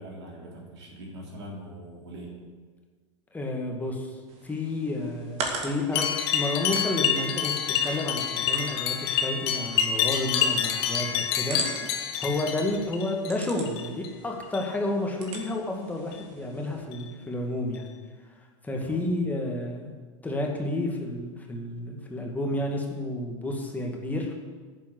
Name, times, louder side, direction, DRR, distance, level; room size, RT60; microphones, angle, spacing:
voice 1, 0.0-2.4 12.7-12.8 18.8-19.0, right 1 dB, 60° right, -2 dB, 3.3 m, -42 dB
voice 2, 3.3-4.2 4.4-17.9 18.6-19.9 20.2-24.3, left 2 dB, 10° left, 1 dB, 2.2 m, -31 dB
sound 1, 4.3-16.8, right 3 dB, 40° right, 2.2 m, -41 dB
sound 2, 5.9-13.3 13.6-14.1 14.4-14.7 15.3-15.5 16.1-16.2 16.9-17.0 17.7-17.8, left 8 dB, 50° left, 1.3 m, -27 dB
10.5 x 7.5 x 8.3 m, 1.5 s
figure-of-eight pair, 85°, 16 cm